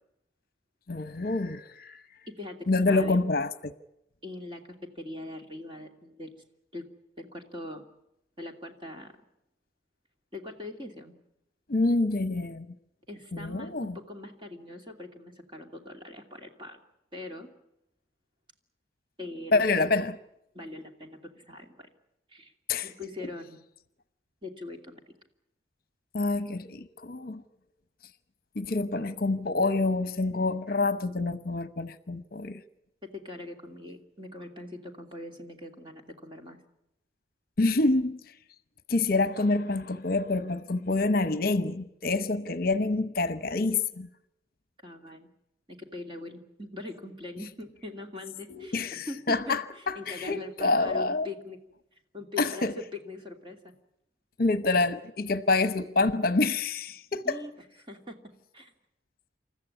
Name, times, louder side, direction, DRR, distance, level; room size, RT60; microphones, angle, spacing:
voice 1, 0.9-2.0 2.7-3.7 11.7-12.7 13.3-14.0 19.5-20.2 22.7-22.9 26.1-27.4 28.6-32.6 37.6-38.2 38.9-44.1 48.5-51.3 52.4-52.7 54.4-57.4, left 3 dB, 50° left, 0.9 m, -27 dB
voice 2, 2.9-3.2 4.2-4.6 4.9-6.4 6.7-6.8 7.2-7.9 8.4-9.1 10.3-11.1 13.1-16.8 17.1-17.5 19.2-19.7 20.5-21.9 22.3-22.5 22.8-23.6 24.4-25.1 33.2-36.6 43.4-43.6 44.8-45.3 45.7-51.6 52.1-53.7 57.2-57.5 57.9-58.1 58.5-58.7, left 2 dB, 25° right, 2.7 m, -42 dB
28.5 x 14.5 x 9.9 m
head